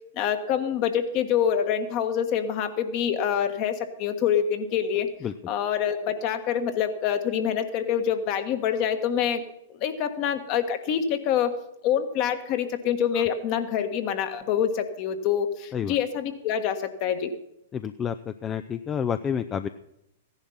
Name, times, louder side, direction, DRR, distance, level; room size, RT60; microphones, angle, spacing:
voice 1, 0.1-5.1 5.5-9.4 9.7-11.5 11.8-17.3, left 8 dB, 45° left, 8 dB, 1.6 m, -26 dB
voice 2, 17.7-19.7, left 8 dB, 25° left, 11 dB, 0.5 m, -29 dB
15.5 x 10.5 x 5.7 m, 0.83 s
hypercardioid pair, 110°, 0 cm